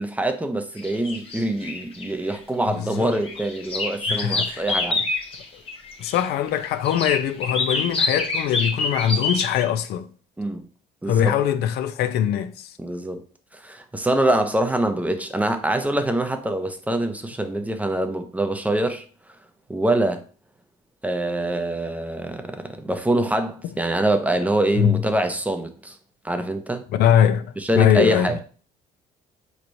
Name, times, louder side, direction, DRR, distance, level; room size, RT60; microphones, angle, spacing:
voice 1, 0.0-5.0 10.4-10.7 11.0-11.4 12.8-13.2 13.6-19.0 19.7-20.2 21.0-26.0 26.2-26.8 27.6-28.4, right 1 dB, 10° right, 0.4 m, -24 dB
sound 1, 0.8-2.4 2.9-6.2 6.8-9.6, left 3 dB, 35° left, 0.9 m, -26 dB
voice 2, 2.7-3.2 4.1-4.7 6.0-10.1 11.1-12.7 24.8-25.0 26.9-27.5 27.7-28.4, left 10 dB, 75° left, 0.4 m, -22 dB
4.2 x 3.1 x 2.6 m
cardioid pair, 110°, 17 cm